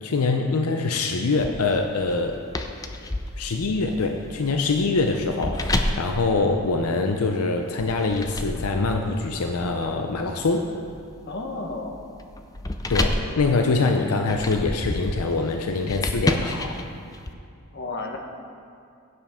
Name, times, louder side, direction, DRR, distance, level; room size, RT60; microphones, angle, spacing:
voice 1, 0.0-2.4 3.4-10.7 12.9-16.7, left 3 dB, 75° left, 4 dB, 0.6 m, -24 dB
sound 1, 1.4-7.2 7.8-17.3, left 1 dB, 15° left, 0.4 m, -31 dB
voice 2, 11.3-12.0 17.7-18.2, left 3 dB, 50° left, 2 dB, 1.0 m, -32 dB
16.0 x 7.3 x 3.6 m, 2.4 s
head